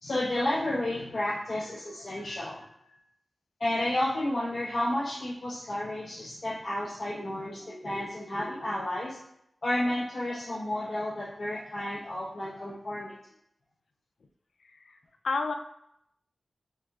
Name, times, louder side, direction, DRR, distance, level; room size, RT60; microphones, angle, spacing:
voice 1, 0.0-2.9 3.6-9.2 9.6-13.1, left 1 dB, 50° left, -8 dB, 0.8 m, -31 dB
voice 2, 14.6-15.0 15.2-15.5, left 4 dB, 90° left, 5 dB, 0.4 m, -31 dB
4.8 x 2.7 x 3.6 m, 0.76 s
wide cardioid pair, 115°, 0 cm